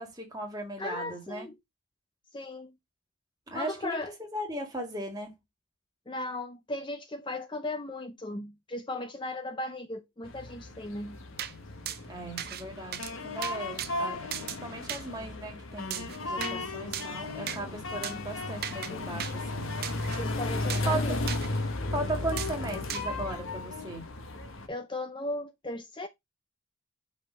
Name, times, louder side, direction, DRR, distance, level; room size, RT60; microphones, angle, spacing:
voice 1, 0.0-1.5 3.5-5.3 12.0-19.7 20.8-21.0 21.9-24.0, right 1 dB, 20° right, 1.9 m, -37 dB
voice 2, 0.8-1.6 2.3-2.7 3.5-4.1 6.1-11.2 16.4-17.0 18.9-19.3 20.2-21.2 24.7-26.1, left 2 dB, 25° left, 0.5 m, -37 dB
sound 1, 10.2-24.7, left 2 dB, 75° left, 1.3 m, -35 dB
sound 2, 11.4-11.5 11.9-12.0 12.4-12.6 12.9-13.1 13.4-13.9 14.3-14.6 14.9-15.0 15.9-16.6 16.9-17.1 17.5-17.6 18.0-18.2 18.6-18.9 19.2-19.3 19.8-20.2 20.7-20.9 21.3-21.5 22.4-22.5 22.9-23.1, right 10 dB, 45° right, 0.6 m, -36 dB
5.5 x 4.2 x 5.0 m
head